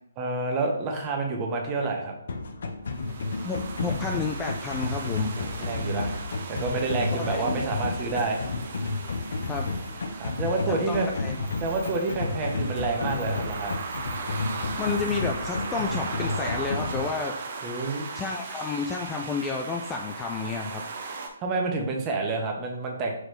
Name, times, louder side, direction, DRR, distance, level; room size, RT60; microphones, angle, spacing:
voice 1, 0.2-2.1 5.4-6.2 6.5-8.4 10.2-11.1 11.6-13.8 17.6-18.1 21.4-23.1, right 3 dB, 25° right, 1 dB, 1.2 m, -28 dB
sound 1, 2.3-17.1, left 3 dB, 60° left, 0.9 m, -31 dB
sound 2, 2.9-21.3, right 4 dB, 50° right, 1.0 m, -38 dB
voice 2, 3.4-5.3 7.1-7.6 9.5-9.7 10.7-11.3 14.8-17.4 18.1-20.8, left 4 dB, 15° left, 2 dB, 0.5 m, -31 dB
6.0 x 4.9 x 3.3 m, 0.74 s
figure-of-eight pair, 140°, 0 cm